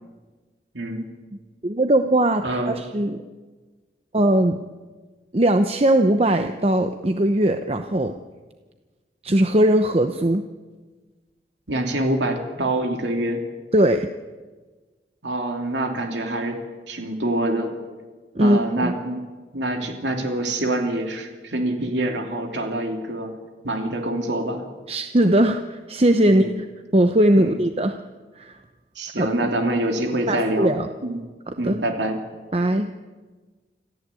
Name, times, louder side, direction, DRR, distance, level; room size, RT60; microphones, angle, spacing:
voice 1, 0.7-1.1 2.4-2.8 11.7-13.4 15.2-16.6 16.9-17.7 18.4-19.2 19.5-23.3 23.6-24.6 26.2-26.6 28.9-30.7 31.0-31.2 31.6-32.2, right 1 dB, 85° right, 3 dB, 2.9 m, -25 dB
voice 2, 1.6-3.2 4.1-4.6 5.3-8.1 9.2-10.4 13.7-14.1 18.3-18.9 24.9-26.7 26.9-28.0 28.4-28.6 29.2-29.3 30.3-30.9 31.5-31.8 32.5-32.9, right 1 dB, 35° right, 7 dB, 0.8 m, -19 dB
26.5 x 14.5 x 8.4 m, 1.3 s
head